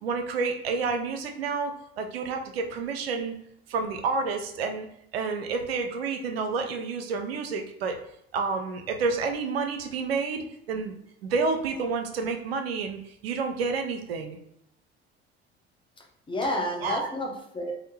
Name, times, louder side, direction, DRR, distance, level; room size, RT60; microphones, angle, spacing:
voice 1, 0.0-3.3 3.7-4.9 5.1-8.0 8.3-10.9 11.2-14.4 16.8-17.1, right 4 dB, 75° right, 5 dB, 0.5 m, -29 dB
voice 2, 16.0-17.7, left 1 dB, 15° left, 1 dB, 0.7 m, -31 dB
3.5 x 2.1 x 2.7 m, 0.75 s
figure-of-eight pair, 60°, 31 cm